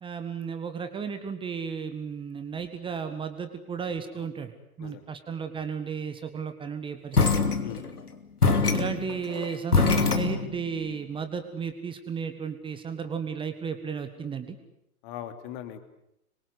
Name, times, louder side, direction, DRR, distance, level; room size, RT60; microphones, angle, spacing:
voice 1, 0.0-4.5 4.8-7.5 8.7-14.6, right 6 dB, 10° right, 9 dB, 1.7 m, -34 dB
sound 1, 7.1-8.0 8.4-10.8, left 4 dB, 75° left, 3.0 m, -24 dB
voice 2, 7.6-8.0 15.0-15.8, left 10 dB, 35° left, 8 dB, 3.0 m, -40 dB
26.5 x 24.0 x 8.2 m, 0.81 s
figure-of-eight pair, 115°, 46 cm